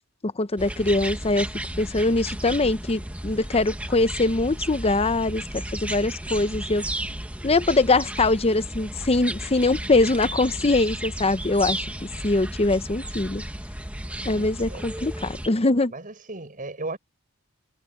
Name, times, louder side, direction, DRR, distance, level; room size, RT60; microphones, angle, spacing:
voice 1, 0.2-1.5 1.8-6.8 7.4-13.4 14.2-15.9, left 2 dB, 25° left, 0.7 m, -23 dB
sound 1, 0.6-15.5, right 1 dB, 5° right, 1.3 m, -34 dB
voice 2, 14.4-14.8 15.9-17.0, right 2 dB, 40° right, 5.9 m, -36 dB
head